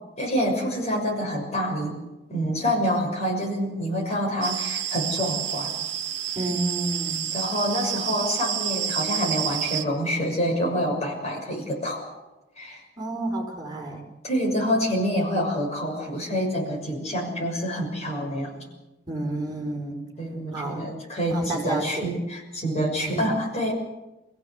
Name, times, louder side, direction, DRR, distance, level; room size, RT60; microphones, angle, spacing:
voice 1, 0.2-2.0 2.3-5.9 7.3-12.2 12.6-12.8 14.2-18.6 20.2-23.7, equal, 40° left, 0 dB, 6.5 m, -27 dB
sound 1, 4.4-9.8, right 9 dB, 80° right, 1.3 m, -29 dB
voice 2, 6.3-7.2 13.0-14.0 19.1-20.0 20.5-20.8 21.3-22.1 22.9-23.3, right 2 dB, 25° right, 0 dB, 4.9 m, -30 dB
27.5 x 16.5 x 8.1 m, 1.0 s
head